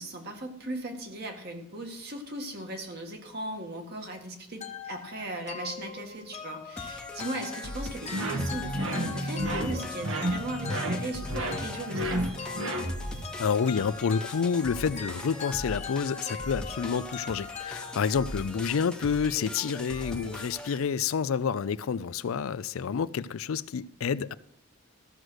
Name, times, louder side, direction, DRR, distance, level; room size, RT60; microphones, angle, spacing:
voice 1, 0.0-12.2, right 1 dB, 50° right, 1.9 m, -38 dB
sound 1, 4.6-18.4, left 6 dB, 35° left, 0.9 m, -41 dB
sound 2, 6.8-20.8, left 1 dB, 5° left, 0.8 m, -40 dB
sound 3, 8.1-13.2, right 1 dB, 80° right, 1.7 m, -31 dB
voice 2, 13.4-24.3, left 6 dB, 85° left, 0.4 m, -29 dB
14.0 x 6.4 x 6.3 m
head